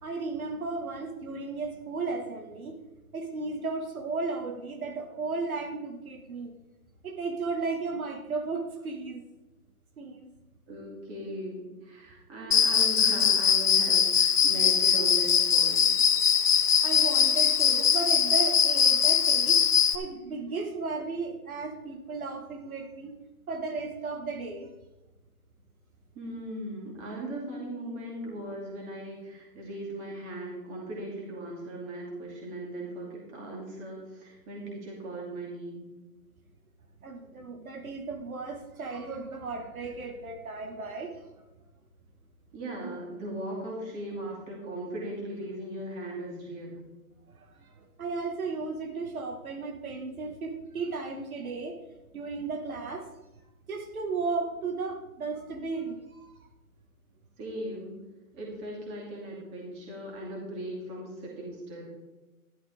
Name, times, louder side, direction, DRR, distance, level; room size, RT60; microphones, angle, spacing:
voice 1, 0.0-2.8 3.1-6.5 7.0-9.2 10.0-10.3 16.8-19.6 19.9-23.1 23.5-24.7 37.0-41.2 47.3-51.8 52.1-53.1 53.7-56.3, right 3 dB, 70° right, 4 dB, 1.8 m, -35 dB
voice 2, 10.7-15.9 26.1-35.9 42.5-46.8 57.4-57.9 58.3-61.9, right 1 dB, 15° right, -2 dB, 2.4 m, -38 dB
Cricket, 12.5-20.0, left 7 dB, 85° left, 1.3 m, -22 dB
13.0 x 11.5 x 3.6 m, 1.1 s
hypercardioid pair, 170°, 44 cm